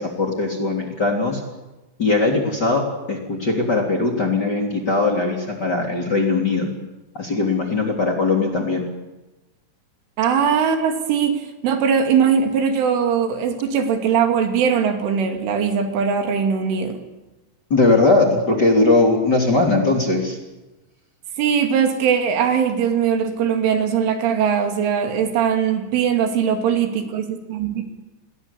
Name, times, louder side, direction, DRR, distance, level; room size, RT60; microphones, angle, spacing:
voice 1, 0.0-1.4 2.0-6.7 7.1-8.9 17.7-20.4, left 3 dB, 25° left, 1 dB, 3.1 m, -19 dB
voice 2, 10.2-17.0 21.4-27.8, right 7 dB, 80° right, 5 dB, 5.1 m, -20 dB
29.0 x 21.0 x 8.5 m, 1.1 s
omnidirectional pair, 5.5 m